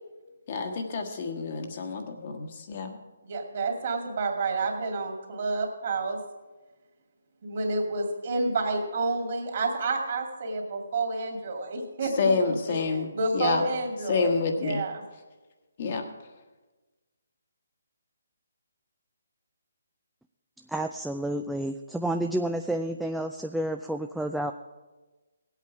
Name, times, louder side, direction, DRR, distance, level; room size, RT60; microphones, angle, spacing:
voice 1, 0.5-3.0 12.2-13.6 14.1-14.8 15.8-16.1, left 4 dB, 45° left, 3 dB, 1.4 m, -28 dB
voice 2, 3.2-6.2 7.4-15.0, right 3 dB, 50° right, 2 dB, 2.5 m, -30 dB
voice 3, 20.7-24.5, right 1 dB, ahead, 4 dB, 0.3 m, -30 dB
17.5 x 8.3 x 4.8 m, 1.2 s
hypercardioid pair, 155°, 0 cm